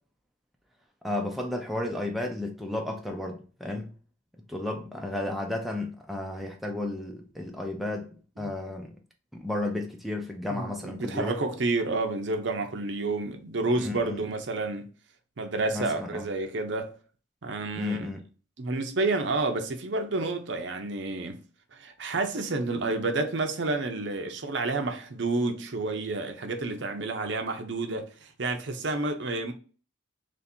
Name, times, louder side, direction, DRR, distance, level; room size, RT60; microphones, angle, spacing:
voice 1, 1.0-3.9 4.5-9.0 9.3-11.4 13.8-14.2 15.7-16.3 17.8-18.2, left 2 dB, ahead, 0.5 m, -33 dB
voice 2, 10.5-14.9 15.4-16.9 17.4-18.1 18.6-21.4 21.7-29.5, right 3 dB, 65° right, 0.6 m, -30 dB
3.2 x 2.6 x 4.3 m
head